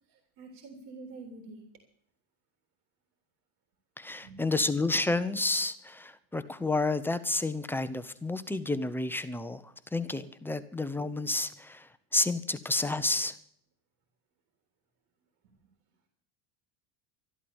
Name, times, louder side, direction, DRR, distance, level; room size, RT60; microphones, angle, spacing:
voice 1, 0.1-1.6 4.2-4.6, right 3 dB, 60° right, 3 dB, 3.7 m, -47 dB
voice 2, 4.0-9.6 9.9-13.3, left 2 dB, 5° left, 11 dB, 0.8 m, -30 dB
13.5 x 12.0 x 7.1 m, 0.64 s
cardioid pair, 150°, 41 cm